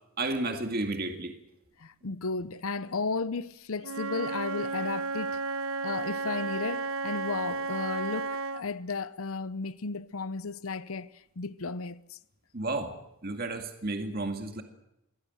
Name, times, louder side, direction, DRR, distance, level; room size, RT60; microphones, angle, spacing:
voice 1, 0.2-1.3 12.5-12.9 13.2-14.6, right 2 dB, 45° right, 2.2 m, -32 dB
voice 2, 1.8-5.4 5.8-12.2, left 4 dB, 70° left, 0.8 m, -34 dB
Wind instrument woodwind instrument, 3.8-8.6, right 3 dB, 70° right, 1.0 m, -33 dB
23.5 x 16.5 x 7.9 m
head